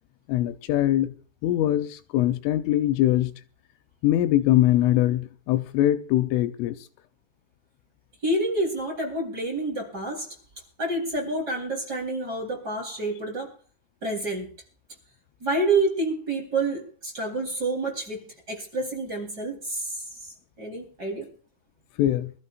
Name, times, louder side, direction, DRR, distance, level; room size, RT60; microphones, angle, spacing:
voice 1, 0.3-1.1 1.4-3.3 4.0-6.8 22.0-22.3, left 13 dB, 85° left, 3.4 m, -22 dB
voice 2, 8.2-10.3 10.8-13.5 14.0-14.5 15.4-20.0 20.6-21.3, right 2 dB, 20° right, 3.7 m, -28 dB
25.0 x 13.5 x 2.5 m
omnidirectional pair, 5.6 m